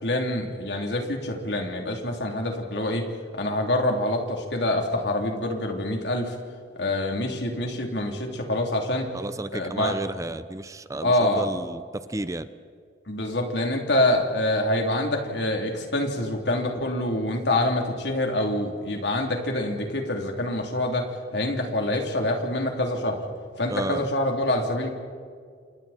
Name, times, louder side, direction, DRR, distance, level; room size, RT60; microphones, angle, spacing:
voice 1, 0.0-3.1 3.3-6.4 6.8-9.1 9.5-9.9 11.0-11.4 13.1-21.1 21.3-23.2 23.6-24.9, left 1 dB, 70° left, 2 dB, 3.5 m, -26 dB
voice 2, 9.1-12.5 23.7-24.1, right 2 dB, 20° right, 13 dB, 0.6 m, -32 dB
29.0 x 28.0 x 4.5 m, 2.1 s
head